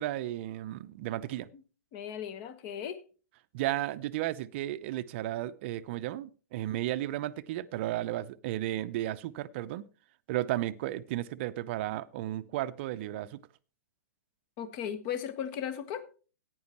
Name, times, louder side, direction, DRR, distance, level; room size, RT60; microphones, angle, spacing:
voice 1, 0.0-1.5 3.5-9.8 10.3-13.4, right 14 dB, 45° right, 0.6 m, -34 dB
voice 2, 1.9-3.0 14.6-16.2, left 9 dB, 40° left, 1.2 m, -36 dB
14.5 x 9.5 x 2.9 m
figure-of-eight pair, 115°, 9 cm